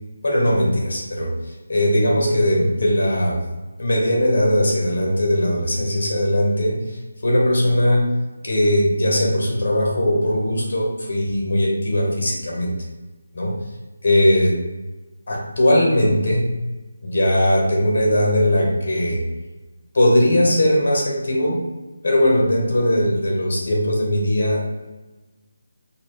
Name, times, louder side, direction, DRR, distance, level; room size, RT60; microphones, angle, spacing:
voice 1, 0.2-1.3 1.7-3.4 3.8-6.8 7.2-8.0 8.4-12.7 13.3-13.5 14.0-14.6 15.3-16.5 17.0-19.2 19.9-21.6 22.0-24.8, left 1 dB, 50° left, -1 dB, 1.3 m, -19 dB
4.2 x 2.5 x 3.3 m, 1.2 s
figure-of-eight pair, 175°, 0 cm